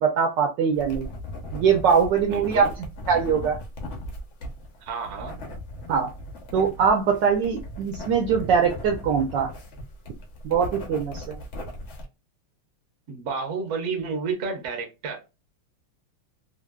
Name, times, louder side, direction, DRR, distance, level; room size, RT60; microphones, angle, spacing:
voice 1, 0.0-1.1 1.5-2.6 3.1-3.6 5.9-6.1 6.5-9.5 10.4-11.4, right 6 dB, 70° right, 1.1 m, -22 dB
sound 1, 0.7-12.0, left 1 dB, 80° left, 0.6 m, -38 dB
voice 2, 2.2-2.7 4.8-5.4 13.1-15.2, right 5 dB, 50° right, 0.9 m, -31 dB
3.3 x 2.5 x 2.2 m
omnidirectional pair, 2.3 m